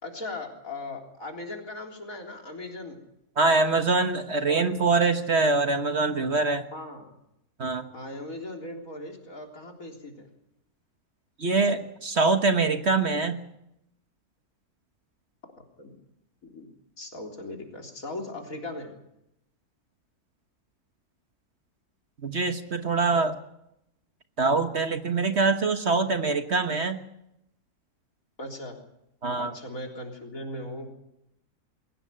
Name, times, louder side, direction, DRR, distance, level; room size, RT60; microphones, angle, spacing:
voice 1, 0.0-3.0 4.5-4.8 6.7-7.1 7.9-10.3 15.8-16.0 16.4-19.0 28.4-28.8 29.3-30.9, left 2 dB, 65° left, 2 dB, 4.1 m, -38 dB
voice 2, 3.4-6.7 7.6-7.9 11.4-13.4 22.2-23.4 24.4-27.0 29.2-29.5, right 3 dB, 45° right, 8 dB, 1.5 m, -24 dB
22.0 x 17.5 x 8.8 m, 0.82 s
omnidirectional pair, 1.6 m